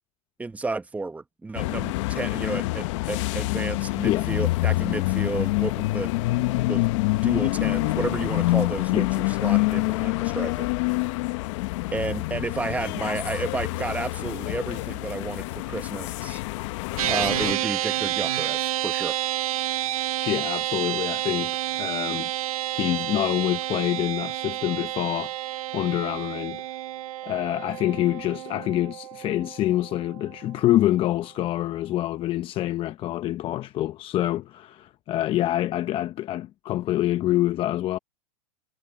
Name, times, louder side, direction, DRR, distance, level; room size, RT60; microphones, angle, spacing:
voice 1, 0.4-10.7 11.9-16.4 17.1-19.2, right 3 dB, 10° right, 1.0 m, -32 dB
sound 1, 1.5-17.5, left 21 dB, 60° left, 0.9 m, -26 dB
sound 2, 17.0-30.5, right 14 dB, 85° right, 1.0 m, -30 dB
voice 2, 20.2-22.3 22.8-25.3 25.7-26.6 27.2-38.0, left 14 dB, 30° left, 0.7 m, -26 dB
supercardioid pair, 135°, 18 cm